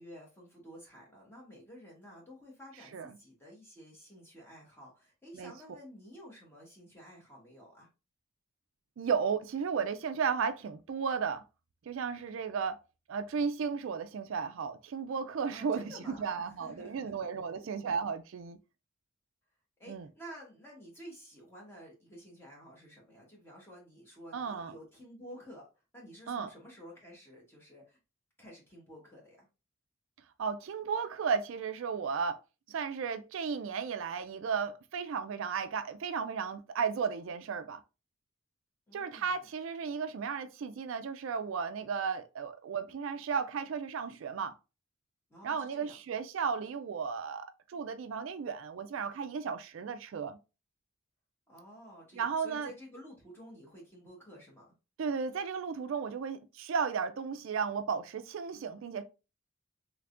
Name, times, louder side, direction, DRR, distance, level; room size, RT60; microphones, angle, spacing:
voice 1, 0.0-7.9 15.5-17.5 19.8-25.6 25.9-28.0 28.4-29.5 38.9-39.5 45.3-46.0 51.5-54.7, equal, 10° left, 1.1 m, -51 dB
voice 2, 9.0-11.4 11.9-12.8 13.1-18.6 19.9-20.1 24.3-24.7 26.3-26.5 30.4-32.4 32.7-37.8 38.9-44.6 45.4-50.4 52.1-52.7 55.0-59.0, right 6 dB, 65° right, 0.3 m, -34 dB
3.5 x 3.2 x 2.5 m
head